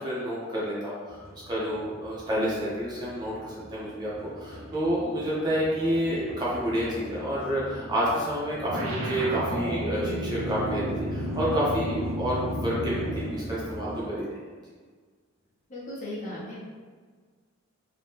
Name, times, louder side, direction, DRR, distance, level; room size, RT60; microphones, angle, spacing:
voice 1, 0.0-14.3, equal, 20° right, -7 dB, 0.6 m, -29 dB
sound 1, 1.1-14.0, equal, 45° right, 0.9 m, -41 dB
sound 2, 8.7-13.4, right 1 dB, 60° right, 0.5 m, -31 dB
voice 2, 15.7-16.6, left 1 dB, 35° left, -7 dB, 0.8 m, -36 dB
2.8 x 2.2 x 3.4 m, 1.5 s
head